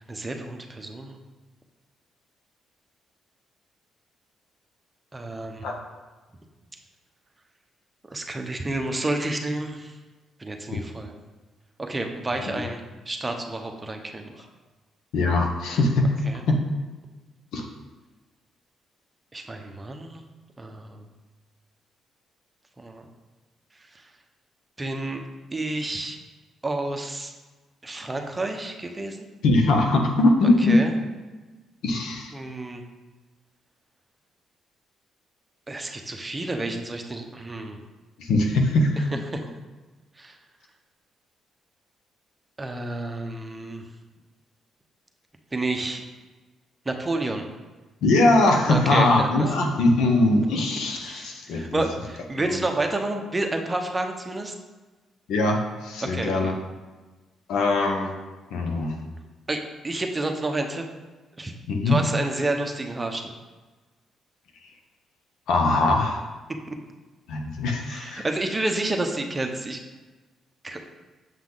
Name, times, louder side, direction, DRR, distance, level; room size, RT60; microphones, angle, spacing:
voice 1, 0.1-1.2 5.1-5.7 8.1-10.0 10.4-11.1 11.8-14.5 16.2-16.4 19.3-20.2 20.6-21.0 22.8-23.1 23.9-24.1 24.8-25.2 25.5-26.2 26.6-27.3 27.8-29.3 30.6-30.9 32.3-32.8 35.7-37.8 39.1-39.4 40.2-40.4 42.6-43.8 45.5-46.0 46.8-47.5 48.7-49.5 51.0-54.5 56.0-56.5 59.5-60.8 61.4-61.5 61.8-63.3 66.7-66.8 67.8-69.8 70.6-70.8, right 2 dB, 20° right, 4 dB, 0.9 m, -30 dB
voice 2, 15.1-16.2 16.5-16.6 17.5-17.7 29.4-30.8 31.8-32.3 38.2-39.1 48.0-51.8 52.4-52.5 55.3-56.5 57.5-58.1 58.5-59.0 61.7-62.0 65.5-66.3 67.3-68.2, left 2 dB, 80° left, 3 dB, 1.1 m, -21 dB
7.3 x 5.7 x 3.9 m, 1.3 s
cardioid pair, 90°, 0 cm